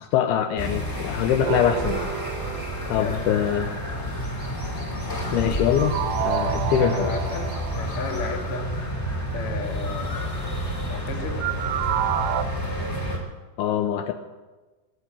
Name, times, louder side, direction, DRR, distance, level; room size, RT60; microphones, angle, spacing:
voice 1, 0.0-2.1 2.9-3.8 5.3-6.0 6.2-7.2 13.6-14.1, left 9 dB, 80° left, 7 dB, 2.6 m, -23 dB
sound 1, 0.6-13.2, equal, 20° left, 2.7 m, -30 dB
sound 2, 1.4-3.5 5.7-8.4 11.4-12.4, right 11 dB, 80° right, 2.6 m, -29 dB
voice 2, 2.9-3.3 6.4-8.7 9.3-10.1 10.8-11.4, left 3 dB, 40° left, 1 dB, 2.5 m, -34 dB
19.5 x 7.9 x 8.6 m, 1.2 s
omnidirectional pair, 4.7 m